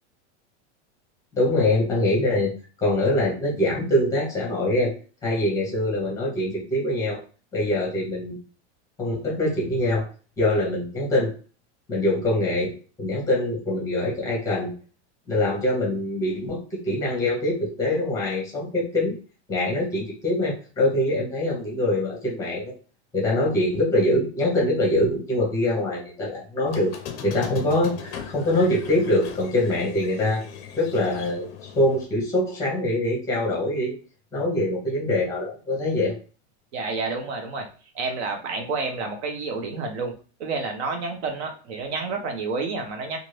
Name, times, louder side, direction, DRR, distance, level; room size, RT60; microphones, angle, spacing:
voice 1, 1.3-2.5 2.8-4.9 5.2-7.2 7.5-8.4 9.0-10.1 10.4-11.3 11.9-12.7 13.0-14.7 15.3-19.2 19.5-22.7 23.1-26.9 27.2-30.4 30.8-33.9 34.3-36.1, left 1 dB, 10° left, -2 dB, 0.9 m, -24 dB
Squeak, 26.7-32.0, left 8 dB, 35° left, 0.5 m, -39 dB
voice 2, 36.7-37.7 37.9-40.1 40.4-43.2, right 4 dB, 65° right, 4 dB, 0.9 m, -29 dB
2.6 x 2.5 x 3.2 m, 0.37 s
supercardioid pair, 165°, 36 cm